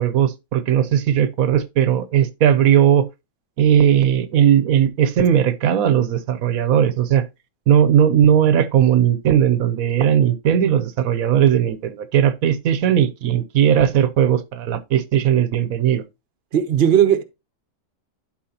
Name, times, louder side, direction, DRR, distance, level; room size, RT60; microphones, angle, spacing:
voice 1, 0.0-3.1 3.6-7.2 7.7-16.0, right 9 dB, 85° right, 1.2 m, -17 dB
voice 2, 16.5-17.2, right 9 dB, 55° right, 1.0 m, -16 dB
11.5 x 4.5 x 2.8 m
omnidirectional pair, 1.4 m